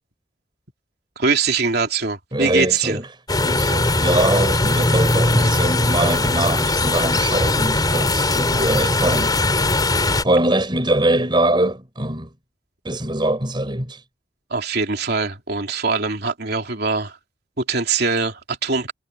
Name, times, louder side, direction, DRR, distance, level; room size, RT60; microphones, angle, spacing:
voice 1, 1.2-3.0 5.4-5.5 14.5-17.2 17.6-18.9, right 4 dB, 55° right, 3.2 m, -22 dB
voice 2, 2.3-3.1 3.4-9.3 10.2-12.3 12.8-14.0, right 1 dB, 25° right, 4.8 m, -22 dB
sound 1, 3.3-10.2, left 2 dB, 20° left, 3.9 m, -19 dB
head